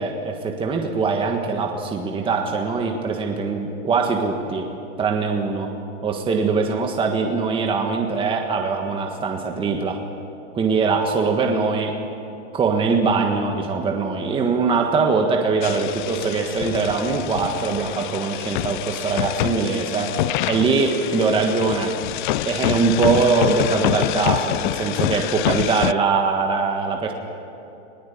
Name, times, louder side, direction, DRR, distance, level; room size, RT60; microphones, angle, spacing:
voice 1, 0.0-4.7 5.0-5.7 6.0-10.0 10.5-12.0 12.5-22.0 22.4-27.1, right 4 dB, 15° right, 2 dB, 1.5 m, -22 dB
sound 1, 15.6-25.9, left 16 dB, 45° left, 0.4 m, -26 dB
21.5 x 19.5 x 8.6 m, 2.8 s
supercardioid pair, 150°, 35 cm